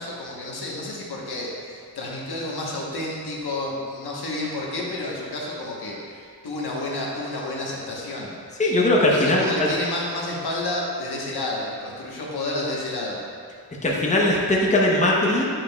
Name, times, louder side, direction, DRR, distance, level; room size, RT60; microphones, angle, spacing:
voice 1, 0.0-8.3 9.1-13.2, left 2 dB, 75° left, -3 dB, 1.2 m, -30 dB
voice 2, 8.6-9.7 13.8-15.5, left 1 dB, 20° left, -3 dB, 0.8 m, -20 dB
8.6 x 5.4 x 2.3 m, 2.2 s
wide cardioid pair, 110°, 39 cm